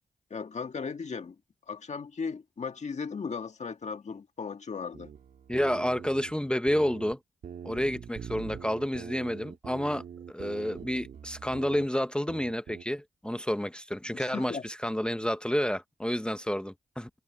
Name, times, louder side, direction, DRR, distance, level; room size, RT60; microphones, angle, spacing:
voice 1, 0.3-1.4 1.7-5.1 14.1-14.6, left 5 dB, 55° left, 1.7 m, -36 dB
sound 1, 4.9-7.2 7.4-11.9 12.3-12.8, right 8 dB, 85° right, 1.7 m, -43 dB
voice 2, 5.5-7.2 7.6-17.1, equal, 5° left, 1.0 m, -30 dB
cardioid pair, 65°, 14 cm